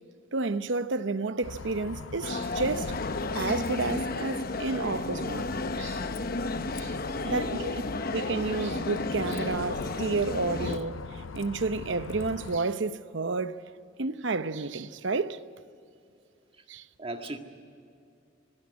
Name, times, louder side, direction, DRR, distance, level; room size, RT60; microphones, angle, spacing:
voice 1, 0.3-2.9 3.3-5.5 5.8-6.0 6.8-7.0 7.3-7.8 8.1-13.6 14.0-15.4 16.7-16.8, right 3 dB, 65° right, 0.8 m, -31 dB
Bus, 1.4-12.6, left 4 dB, 85° left, 0.6 m, -41 dB
sound 1, 2.2-10.8, left 3 dB, 50° left, 0.9 m, -33 dB
voice 2, 7.1-7.5 17.0-17.4, right 2 dB, 30° right, 1.8 m, -38 dB
26.0 x 15.0 x 9.6 m
head